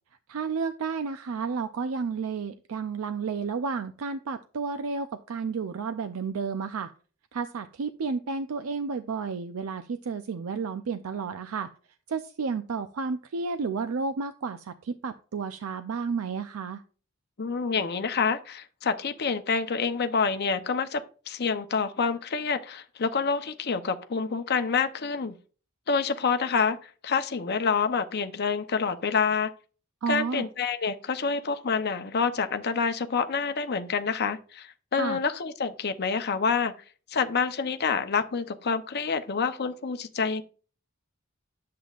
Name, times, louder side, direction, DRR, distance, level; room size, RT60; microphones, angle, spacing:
voice 1, 0.3-6.9 7.3-11.7 12.1-16.8 30.0-30.5 35.0-35.2, right 5 dB, 85° right, 0.5 m, -31 dB
voice 2, 17.4-25.3 25.9-29.5 30.1-36.7 37.1-40.4, left 5 dB, 50° left, 0.7 m, -27 dB
10.0 x 7.5 x 2.4 m
head